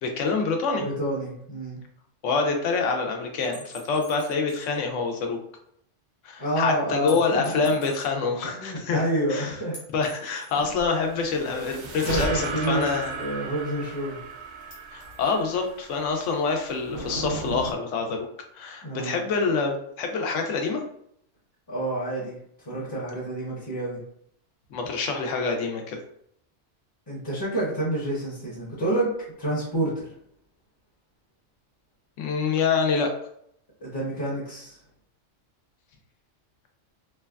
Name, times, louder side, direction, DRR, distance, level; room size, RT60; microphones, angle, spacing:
voice 1, 0.0-0.9 2.2-5.4 6.2-9.6 9.9-13.1 14.9-18.3 18.5-20.8 24.7-26.0 32.2-33.1, left 4 dB, 80° left, 3 dB, 0.9 m, -26 dB
voice 2, 0.8-1.8 6.4-7.9 8.4-9.8 10.6-10.7 12.1-12.9 13.2-14.2 18.8-19.2 21.7-22.4 22.7-24.0 27.1-30.1 33.8-34.8, right 1 dB, 25° left, -8 dB, 0.7 m, -28 dB
sound 1, 3.5-4.8 5.2-5.3 7.1-8.1 9.7-10.7 12.0-13.3 14.7-15.4, left 3 dB, 60° left, 1.2 m, -46 dB
Thunder / Rain, 10.6-17.8, right 1 dB, 90° right, 1.0 m, -42 dB
sound 2, 10.9-16.2, right 3 dB, 65° right, 0.4 m, -35 dB
3.2 x 2.2 x 2.3 m, 0.68 s
omnidirectional pair, 1.3 m